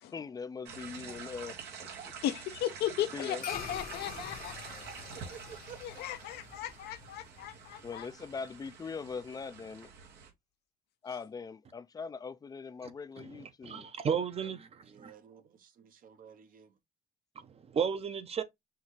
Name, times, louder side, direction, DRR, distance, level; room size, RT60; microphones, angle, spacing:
voice 1, 0.1-1.6 2.0-2.1 3.1-3.4 7.8-9.9 11.0-13.9, left 5 dB, 20° left, 0.4 m, -41 dB
sound 1, 0.7-10.3, right 6 dB, 80° right, 1.7 m, -47 dB
voice 2, 2.2-4.5 5.8-8.1, left 12 dB, 75° left, 0.7 m, -36 dB
sound 2, 3.4-8.0, left 8 dB, 55° left, 1.0 m, -45 dB
voice 3, 5.0-6.0 14.8-16.8, right 8 dB, 55° right, 1.0 m, -53 dB
voice 4, 13.2-15.1 17.4-18.4, right 7 dB, 35° right, 0.8 m, -34 dB
5.7 x 2.7 x 3.1 m
cardioid pair, 110°, 17 cm